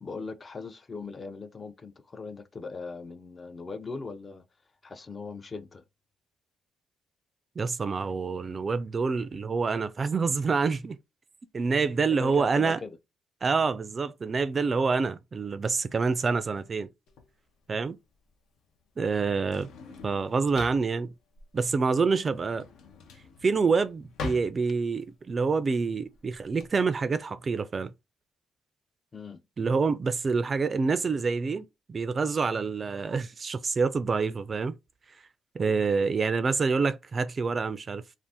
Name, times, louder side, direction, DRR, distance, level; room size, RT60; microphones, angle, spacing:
voice 1, 0.0-4.4 4.8-5.8 12.2-13.0 29.1-29.4 35.6-36.1, left 4 dB, 35° left, 0.4 m, -39 dB
voice 2, 7.6-11.0 11.5-12.8 13.4-16.9 17.7-18.0 19.0-19.7 20.0-21.1 21.5-22.7 23.4-27.9 29.6-34.7 35.5-38.0, right 4 dB, 35° right, 0.3 m, -27 dB
Drawer open or close, 17.1-26.7, left 4 dB, 80° left, 0.7 m, -44 dB
2.6 x 2.4 x 3.4 m
cardioid pair, 90°, 0 cm